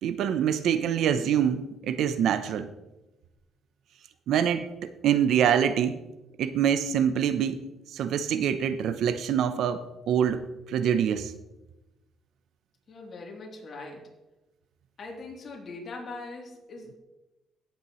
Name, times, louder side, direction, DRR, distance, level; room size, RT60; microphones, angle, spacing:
voice 1, 0.0-2.7 4.3-6.0 6.4-7.7 7.9-10.4 10.7-11.3, right 9 dB, 75° right, 12 dB, 0.7 m, -25 dB
voice 2, 12.9-14.1 15.0-17.0, left 3 dB, 50° left, -1 dB, 3.0 m, -41 dB
17.5 x 8.4 x 3.1 m, 1.0 s
cardioid pair, 90°, 0 cm